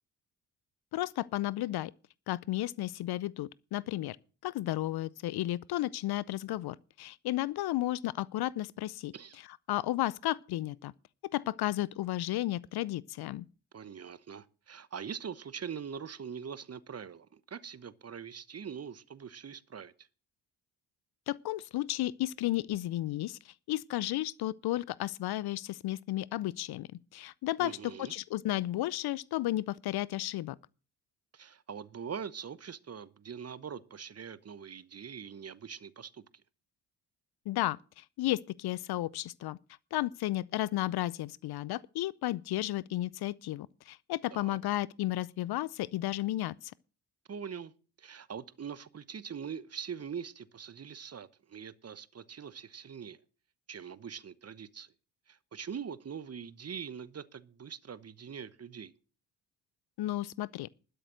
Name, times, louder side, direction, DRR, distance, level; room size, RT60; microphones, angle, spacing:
voice 1, 0.9-1.9 2.3-4.2 4.4-9.1 9.7-10.9 11.3-13.4 21.3-23.4 23.7-30.6 37.5-39.6 39.9-46.5 60.0-60.7, left 15 dB, 55° left, 0.6 m, -33 dB
voice 2, 13.7-20.1 27.6-28.1 31.3-36.2 44.3-44.6 47.3-47.7 48.0-53.2 53.7-54.9 55.3-58.9, right 7 dB, 35° right, 0.9 m, -43 dB
12.0 x 6.7 x 7.6 m
hypercardioid pair, 50°, 45 cm